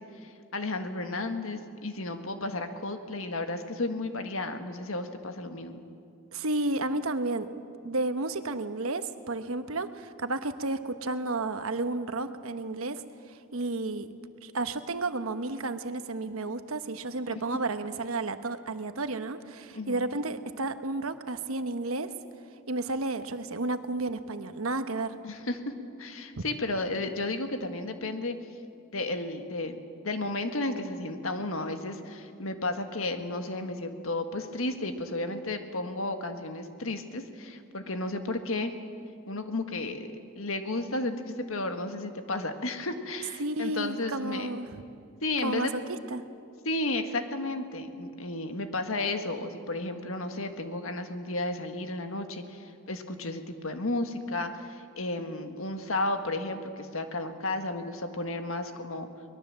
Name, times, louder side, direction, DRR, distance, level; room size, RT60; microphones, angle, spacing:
voice 1, 0.2-5.8 17.3-17.4 19.7-20.1 25.2-25.7 26.0-28.4 28.9-38.7 39.3-40.1 40.3-44.5 45.2-45.7 46.6-59.1, left 2 dB, 75° left, 7 dB, 1.6 m, -33 dB
voice 2, 6.3-7.5 7.8-13.0 13.3-14.1 14.4-22.1 22.7-25.2 26.4-26.5 43.4-44.8 45.4-46.3, right 2 dB, 80° right, 10 dB, 1.1 m, -32 dB
23.5 x 20.5 x 7.5 m, 2.4 s
head